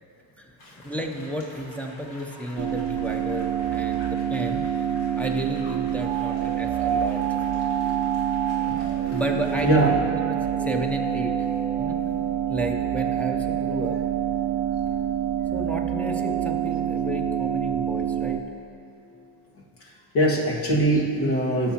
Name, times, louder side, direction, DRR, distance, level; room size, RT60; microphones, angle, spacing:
sound 1, 0.6-9.9, left 1 dB, 85° left, 2.2 m, -47 dB
voice 1, 0.8-4.9 5.1-7.4 9.1-10.0 10.3-11.5 11.8-12.0 12.5-14.0 14.3-14.4 14.9-15.0 15.5-18.4, equal, 5° left, 0 dB, 0.6 m, -32 dB
sound 2, 2.6-18.4, right 9 dB, 70° right, 0.6 m, -26 dB
voice 2, 9.6-9.9 19.8-21.7, right 1 dB, 70° left, -4 dB, 2.0 m, -22 dB
15.5 x 6.1 x 2.9 m, 2.8 s
cardioid pair, 105°, 41 cm